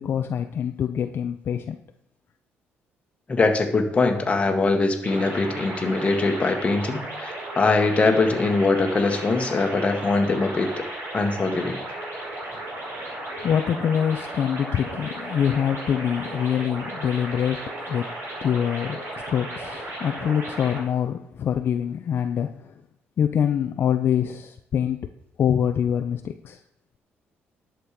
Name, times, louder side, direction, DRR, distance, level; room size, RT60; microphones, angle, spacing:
voice 1, 0.0-1.8 13.4-18.1 18.4-22.5 23.2-25.1 25.4-26.6, left 8 dB, 55° left, 0.7 m, -25 dB
voice 2, 3.3-10.8 11.1-11.8, left 3 dB, 25° left, 1.8 m, -22 dB
sound 1, 5.0-20.8, right 1 dB, 65° right, 4.4 m, -35 dB
11.0 x 7.6 x 5.0 m
cardioid pair, 105°, 4 cm